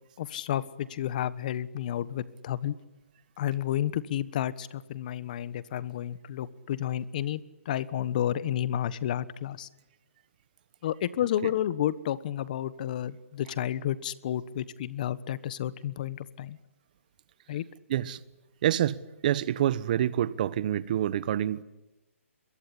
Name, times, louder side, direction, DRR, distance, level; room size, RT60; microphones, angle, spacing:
voice 1, 0.2-2.7 3.4-9.7 10.8-16.6 17.5-17.6, left 11 dB, 35° left, 1.2 m, -31 dB
voice 2, 18.6-21.6, right 11 dB, 35° right, 1.1 m, -27 dB
26.5 x 23.0 x 10.0 m
hypercardioid pair, 160°, 7 cm